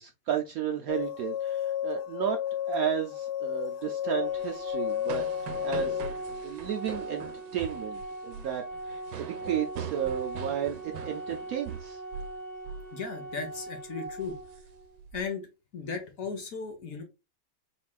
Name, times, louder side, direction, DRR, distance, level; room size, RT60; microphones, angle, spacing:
voice 1, 0.0-2.4 2.7-5.2 5.5-6.1 6.4-12.0, right 9 dB, 75° right, 0.8 m, -33 dB
sound 1, 0.9-6.1, left 11 dB, 75° left, 1.2 m, -32 dB
Organ, 4.0-15.0, right 2 dB, 15° left, 1.0 m, -41 dB
sound 2, 4.3-12.4 12.6-12.9 13.3-13.6 14.1-15.2, right 7 dB, 90° right, 1.4 m, -42 dB
voice 2, 12.9-14.4 15.1-15.5 15.7-17.0, left 5 dB, 55° left, 1.2 m, -36 dB
4.3 x 4.1 x 2.3 m
omnidirectional pair, 2.0 m